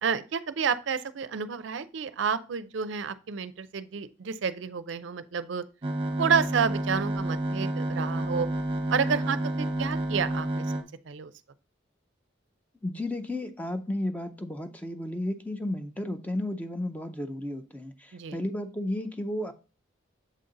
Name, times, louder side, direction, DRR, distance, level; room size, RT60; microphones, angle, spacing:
voice 1, 0.0-5.6 6.2-8.5 8.9-10.6 11.1-11.3 18.1-18.4, right 6 dB, 70° right, 0.4 m, -30 dB
sound 1, 5.8-10.8, right 1 dB, 25° right, 0.8 m, -30 dB
voice 2, 12.8-19.5, left 1 dB, 10° left, 0.4 m, -33 dB
7.4 x 3.9 x 3.8 m
head